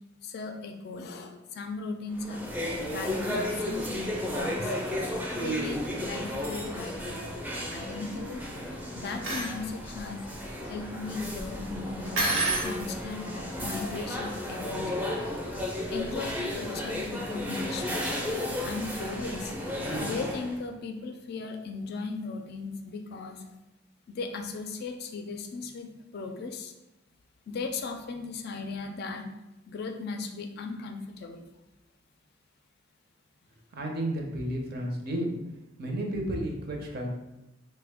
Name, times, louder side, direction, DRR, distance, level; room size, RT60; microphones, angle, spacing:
voice 1, 0.2-2.4 2.9-4.7 5.3-7.2 7.7-8.4 8.9-10.3 10.6-12.3 12.6-15.0 15.9-18.1 18.6-19.5 20.0-23.5 24.1-25.9 26.1-26.7 27.5-29.3 29.7-31.5, left 3 dB, 55° left, 5 dB, 0.3 m, -37 dB
sound 1, 2.1-20.6, left 1 dB, 10° right, 0.4 m, -33 dB
sound 2, 9.0-9.5 12.2-12.7, right 2 dB, 85° right, 1.0 m, -27 dB
voice 2, 33.8-35.3 35.8-37.1, right 1 dB, 55° right, 1 dB, 0.6 m, -32 dB
3.2 x 2.1 x 3.4 m, 0.94 s
head